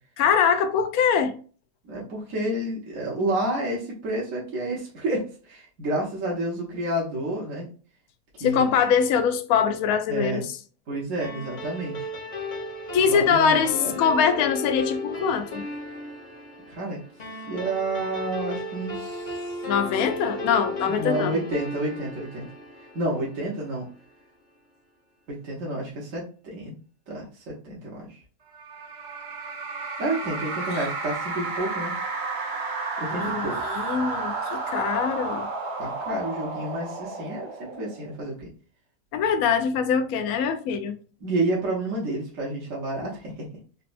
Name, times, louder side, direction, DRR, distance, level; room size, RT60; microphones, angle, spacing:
voice 1, 0.2-1.3 8.4-10.4 12.9-15.6 19.7-21.3 33.1-35.5 39.1-41.0, left 6 dB, 70° left, 0.9 m, -23 dB
voice 2, 1.8-7.7 8.3-8.7 10.1-10.4 10.9-12.1 13.0-13.9 16.7-17.0 17.5-19.6 20.9-22.5 22.9-23.8 25.3-26.7 27.1-28.2 30.0-31.9 33.0-33.6 35.8-38.5 41.2-43.5, right 1 dB, 55° right, 1.3 m, -30 dB
sound 1, 11.2-23.9, left 2 dB, 35° left, 0.9 m, -35 dB
sound 2, 28.5-38.2, right 3 dB, 75° right, 0.4 m, -32 dB
4.2 x 2.3 x 2.5 m
omnidirectional pair, 1.8 m